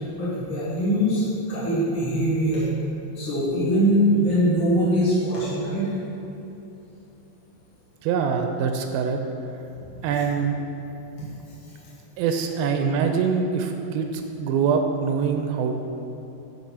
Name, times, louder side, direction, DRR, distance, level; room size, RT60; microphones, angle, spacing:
voice 1, 0.2-2.6 3.1-5.9, equal, 55° left, -9 dB, 1.4 m, -22 dB
voice 2, 8.0-9.2 10.0-10.6 12.2-15.8, right 6 dB, 85° right, 5 dB, 2.1 m, -24 dB
9.1 x 4.9 x 5.6 m, 3.0 s
omnidirectional pair, 4.7 m